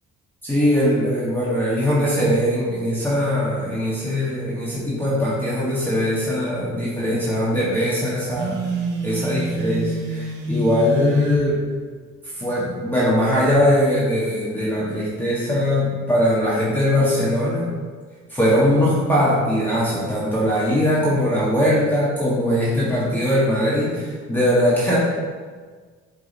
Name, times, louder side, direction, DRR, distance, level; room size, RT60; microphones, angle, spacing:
voice 1, 0.4-8.7 9.0-11.6 12.4-17.7 18.3-25.0, equal, 5° left, -9 dB, 1.7 m, -21 dB
Telephone, 8.3-11.5, equal, 85° right, 0.9 m, -26 dB
7.8 x 3.5 x 4.2 m, 1.5 s
cardioid pair, 90°, 30 cm